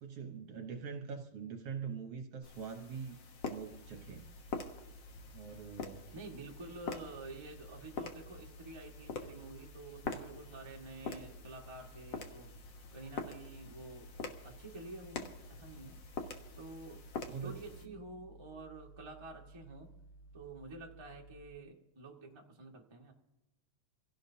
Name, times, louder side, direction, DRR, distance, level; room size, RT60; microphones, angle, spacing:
voice 1, 0.0-3.2 3.5-4.3 5.3-6.1 17.2-18.0, right 6 dB, 65° right, 5 dB, 1.6 m, -44 dB
sound 1, 2.4-17.9, left 4 dB, 70° left, 1.1 m, -46 dB
sound 2, 3.7-21.6, right 2 dB, 30° left, 4.1 m, -57 dB
sound 3, 4.6-14.5 14.9-18.3 18.5-18.8 19.1-19.9 20.2-20.4, equal, 85° left, 4.2 m, -68 dB
voice 2, 6.1-12.5 12.9-14.1 14.4-16.0 16.6-20.0 20.3-23.1, right 2 dB, 45° right, -1 dB, 0.3 m, -49 dB
26.5 x 17.0 x 2.8 m, 0.99 s
omnidirectional pair, 3.7 m